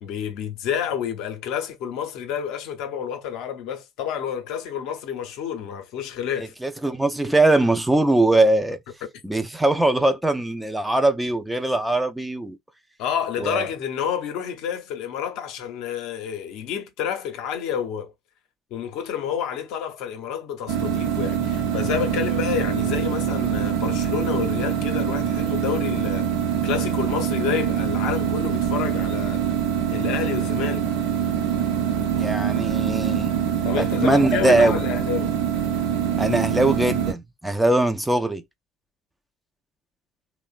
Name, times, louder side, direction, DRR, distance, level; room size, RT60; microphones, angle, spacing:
voice 1, 0.0-6.5 13.0-18.1 18.7-26.3 26.6-29.4 29.9-30.9 33.6-35.3, left 8 dB, 70° left, 0.6 m, -29 dB
voice 2, 6.4-8.8 9.2-12.6 13.4-13.6 32.1-33.3 33.7-34.8 36.2-38.4, right 2 dB, 10° right, 0.4 m, -21 dB
sound 1, 20.7-37.1, right 8 dB, 85° right, 0.6 m, -24 dB
3.0 x 2.0 x 2.3 m
hypercardioid pair, 70°, 0 cm